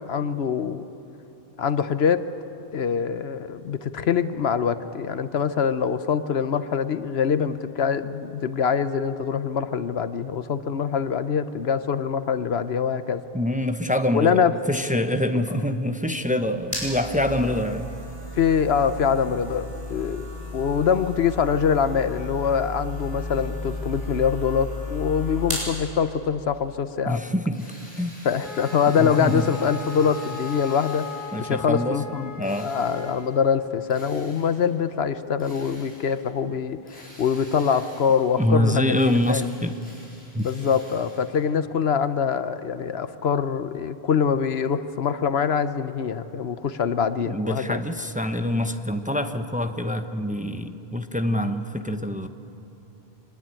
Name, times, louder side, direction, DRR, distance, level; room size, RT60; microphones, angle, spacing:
voice 1, 0.1-0.9 1.6-2.2 2.7-13.2 14.1-14.5 18.3-20.3 20.5-27.2 28.2-31.1 31.4-32.3 32.6-39.5 40.4-47.8, left 7 dB, 75° left, 12 dB, 1.1 m, -24 dB
voice 2, 13.3-17.9 27.1-28.2 29.0-29.5 31.3-32.0 32.4-32.7 38.4-39.8 40.3-40.5 47.3-52.3, left 1 dB, 10° right, 7 dB, 0.8 m, -25 dB
sound 1, 16.2-25.8, left 2 dB, 30° right, 7.6 m, -34 dB
Drill, 27.5-31.7 32.4-33.4 33.9-34.8 35.4-36.3 36.9-38.5 38.9-41.5, equal, 10° left, 7.6 m, -48 dB
Wind instrument woodwind instrument, 28.4-33.2, left 5 dB, 55° left, 5.4 m, -37 dB
24.5 x 21.0 x 9.1 m, 2.9 s
omnidirectional pair, 1.1 m